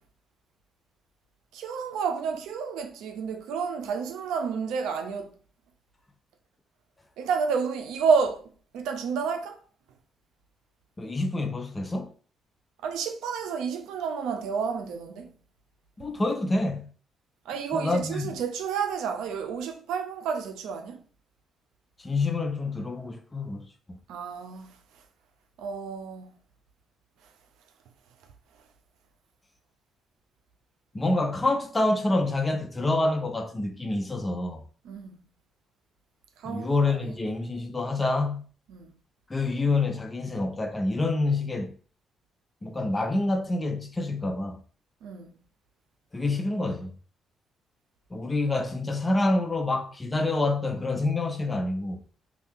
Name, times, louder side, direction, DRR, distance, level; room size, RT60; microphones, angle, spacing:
voice 1, 1.5-5.3 7.2-8.4 8.7-9.6 12.8-15.3 17.5-21.0 24.1-24.7 25.6-26.3 34.8-35.1 36.4-36.7 38.7-38.9 45.0-45.3, right 6 dB, 90° right, 0.5 m, -30 dB
voice 2, 11.0-12.1 16.0-16.9 17.7-18.4 22.0-23.6 30.9-34.6 36.4-38.4 39.3-41.7 42.6-44.6 46.1-46.9 48.1-52.0, left 2 dB, 20° left, 0.5 m, -27 dB
2.7 x 2.3 x 3.5 m
cardioid pair, 90°, 0 cm